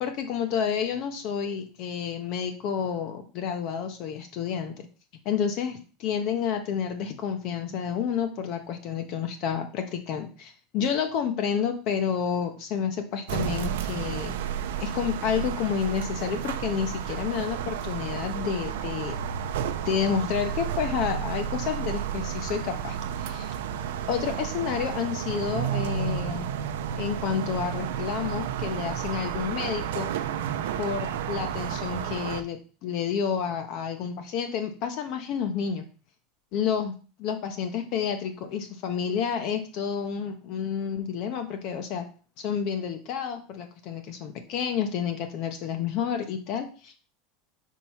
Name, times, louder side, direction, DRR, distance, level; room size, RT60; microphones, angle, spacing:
voice 1, 0.0-4.9 5.2-14.3 14.8-19.2 19.8-23.5 24.1-26.5 27.0-30.1 30.8-35.8 36.5-36.9 37.2-42.0 42.4-47.1, left 7 dB, 40° left, 6 dB, 0.6 m, -30 dB
sound 1, 13.3-32.4, right 9 dB, 90° right, 0.6 m, -31 dB
4.6 x 4.5 x 5.5 m, 0.38 s
supercardioid pair, 175°, 0 cm